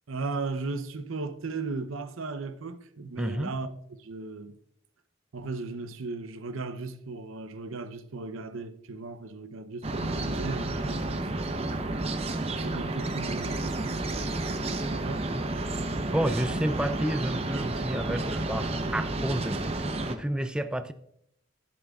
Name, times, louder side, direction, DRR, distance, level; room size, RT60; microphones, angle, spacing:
voice 1, 0.1-4.6 5.3-12.0 12.5-15.3, right 3 dB, 85° right, 0.7 m, -37 dB
voice 2, 3.2-3.5 15.3-15.4 16.1-20.9, right 1 dB, 5° right, 0.3 m, -31 dB
sound 1, 9.8-20.1, right 2 dB, 30° right, 0.7 m, -31 dB
14.0 x 7.6 x 2.4 m
head